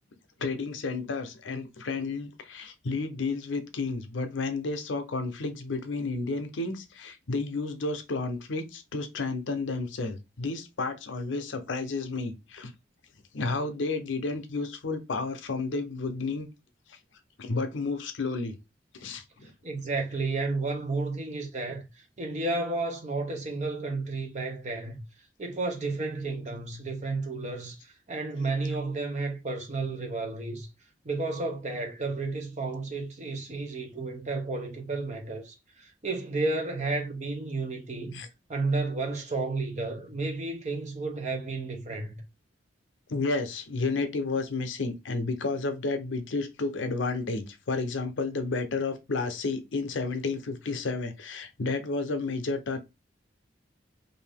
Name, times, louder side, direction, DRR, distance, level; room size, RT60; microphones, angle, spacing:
voice 1, 0.4-12.7 13.3-16.5 17.4-18.6 18.9-19.5 38.1-38.3 43.1-52.8, left 3 dB, 90° left, 0.6 m, -31 dB
voice 2, 19.6-21.9 22.2-25.0 25.4-30.7 31.0-38.2 38.5-42.2, right 3 dB, 40° right, 0.7 m, -32 dB
2.6 x 2.6 x 3.4 m
head